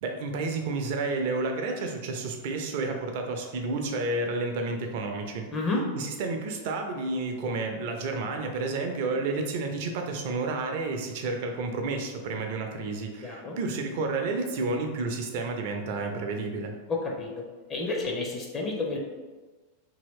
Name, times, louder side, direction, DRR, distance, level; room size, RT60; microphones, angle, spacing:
voice 1, 0.0-5.5 5.9-16.7, right 3 dB, 50° right, 4 dB, 0.5 m, -31 dB
voice 2, 5.5-5.8 13.2-13.6 16.9-17.4 17.7-19.0, left 3 dB, 25° left, -1 dB, 0.5 m, -30 dB
2.9 x 2.7 x 3.1 m, 1.3 s
figure-of-eight pair, 90°, 0 cm